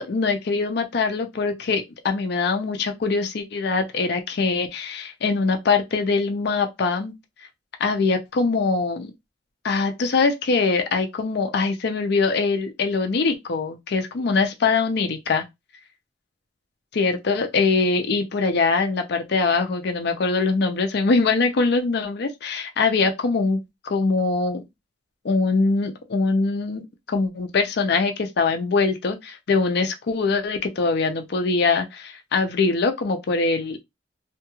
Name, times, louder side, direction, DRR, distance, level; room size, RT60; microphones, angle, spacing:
voice 1, 0.0-7.1 7.8-9.1 9.6-15.4 16.9-24.6 25.2-33.8, left 4 dB, 60° left, 0.5 m, -23 dB
2.8 x 2.3 x 2.9 m
head